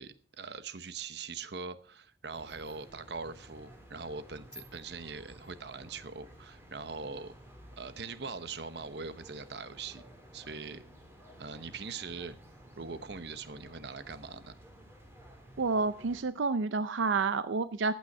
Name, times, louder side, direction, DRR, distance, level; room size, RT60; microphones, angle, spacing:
voice 1, 0.0-7.3 7.8-10.0 10.3-10.8 11.4-12.4 12.8-14.6, right 4 dB, 60° right, 1.0 m, -42 dB
sound 1, 2.3-16.2, equal, 15° right, 3.4 m, -54 dB
voice 2, 15.6-17.9, right 4 dB, 90° right, 0.5 m, -29 dB
14.5 x 9.4 x 5.4 m
head